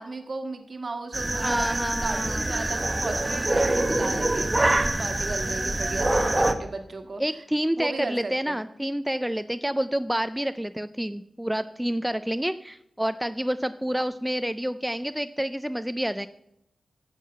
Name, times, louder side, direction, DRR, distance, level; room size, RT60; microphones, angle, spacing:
voice 1, 0.0-7.2 7.8-8.6, right 3 dB, 45° right, 6 dB, 1.5 m, -35 dB
sound 1, 1.1-6.5, right 2 dB, 20° right, 0.9 m, -25 dB
voice 2, 1.4-2.5 6.1-6.5 7.2-16.3, equal, 5° right, 11 dB, 0.3 m, -28 dB
9.8 x 7.4 x 7.2 m, 0.81 s
wide cardioid pair, 95°, 0 cm